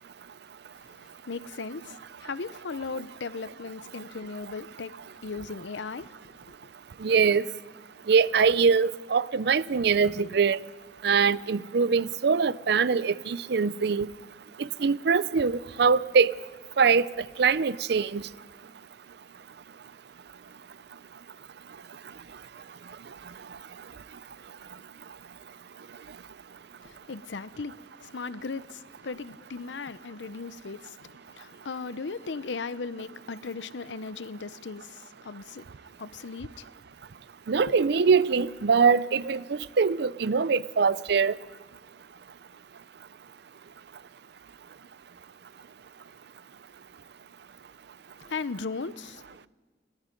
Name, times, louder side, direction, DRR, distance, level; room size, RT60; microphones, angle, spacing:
voice 1, 0.8-4.9 5.2-6.7 26.8-35.6 36.0-36.7 37.5-37.7 48.2-49.5, left 4 dB, 85° left, 0.7 m, -37 dB
voice 2, 7.0-7.4 8.1-10.6 11.0-14.1 14.6-16.3 16.8-17.1 17.4-18.2 37.5-41.3, right 5 dB, 65° right, 0.5 m, -23 dB
29.5 x 18.5 x 5.2 m
head